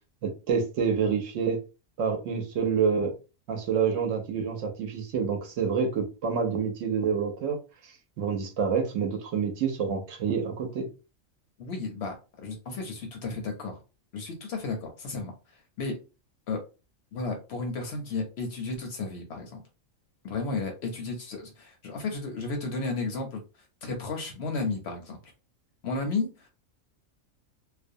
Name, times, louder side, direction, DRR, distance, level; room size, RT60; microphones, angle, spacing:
voice 1, 0.2-1.6 2.0-3.1 3.5-7.6 7.8-7.9 8.2-10.9, right 6 dB, 70° right, 4 dB, 0.9 m, -27 dB
voice 2, 11.6-13.8 14.1-16.0 16.5-16.6 17.1-19.6 20.2-23.4 23.8-25.3 25.8-26.5, left 3 dB, 65° left, 3 dB, 0.8 m, -33 dB
2.5 x 2.1 x 2.6 m, 0.31 s
omnidirectional pair, 1.4 m